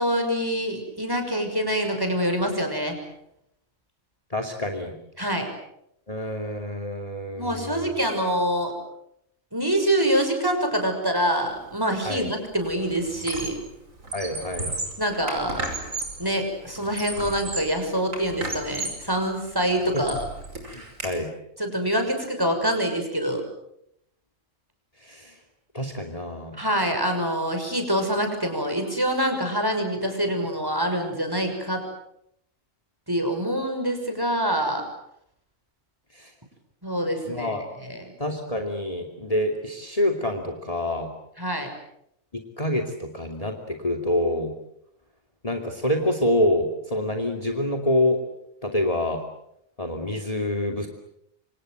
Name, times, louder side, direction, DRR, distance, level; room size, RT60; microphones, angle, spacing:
voice 1, 0.0-3.0 5.2-5.5 7.4-8.7 9.5-13.6 15.0-15.7 16.2-20.2 21.6-23.4 26.5-31.8 33.1-34.8 36.8-38.1 41.4-41.7, equal, 15° right, 5 dB, 6.2 m, -25 dB
voice 2, 4.3-4.9 6.1-7.9 12.0-12.3 14.1-14.7 19.9-20.0 20.7-21.3 25.0-25.3 25.7-26.6 36.2-36.3 37.3-37.6 38.2-41.1 42.3-44.5 45.4-48.2 48.6-49.2 49.8-50.9, left 1 dB, 25° left, 5 dB, 2.8 m, -26 dB
Squeak, 11.9-12.1 12.5-13.7 14.0-16.3 16.7-17.8 18.1-19.1 19.6-21.1, right 2 dB, 80° right, 6.0 m, -34 dB
28.0 x 26.0 x 7.8 m, 0.77 s
omnidirectional pair, 1.4 m